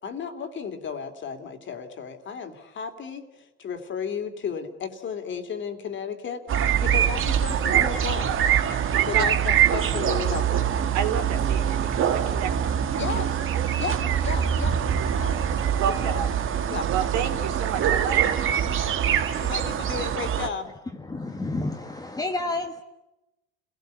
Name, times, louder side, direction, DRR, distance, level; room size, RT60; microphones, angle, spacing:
voice 1, 0.0-8.3 9.0-10.7 13.0-13.5 13.8-14.8 15.2-15.4 16.0-16.3 16.7-16.9 18.6-18.8 19.4-20.7, left 6 dB, 35° left, 7 dB, 3.0 m, -34 dB
sound 1, 6.5-20.5, right 9 dB, 40° right, 1.8 m, -24 dB
voice 2, 10.9-13.0 15.7-16.3 16.9-18.6, right 8 dB, 60° right, 6 dB, 3.6 m, -30 dB
voice 3, 20.9-22.8, left 2 dB, 10° left, 5 dB, 1.5 m, -30 dB
29.5 x 17.5 x 8.4 m, 0.96 s
supercardioid pair, 120°, 32 cm